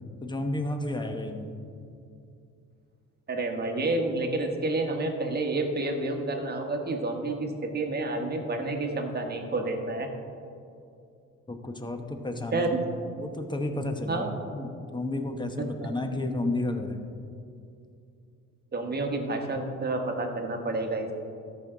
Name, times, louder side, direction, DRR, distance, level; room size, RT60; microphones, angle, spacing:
voice 1, 0.2-1.5 11.5-12.6 13.2-14.2 14.5-17.0, left 2 dB, 15° left, 6 dB, 0.9 m, -31 dB
voice 2, 3.3-10.1 12.5-12.7 14.1-14.3 18.7-21.1, right 2 dB, 35° right, 3 dB, 1.3 m, -29 dB
13.5 x 5.5 x 3.8 m, 2.5 s
cardioid pair, 90°, 30 cm